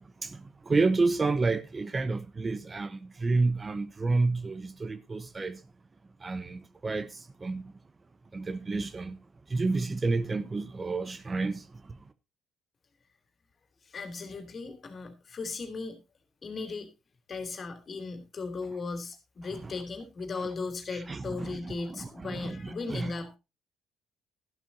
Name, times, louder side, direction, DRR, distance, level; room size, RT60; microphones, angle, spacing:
voice 1, 0.7-5.6 6.2-7.1 7.4-7.6 8.3-9.2 9.5-11.6 19.6-19.7 20.9-23.1, right 3 dB, 30° right, 0.9 m, -30 dB
voice 2, 13.9-16.0 16.4-16.9 17.3-23.4, left 4 dB, 40° left, 3.1 m, -37 dB
13.0 x 12.0 x 2.7 m
hypercardioid pair, 50°, 0 cm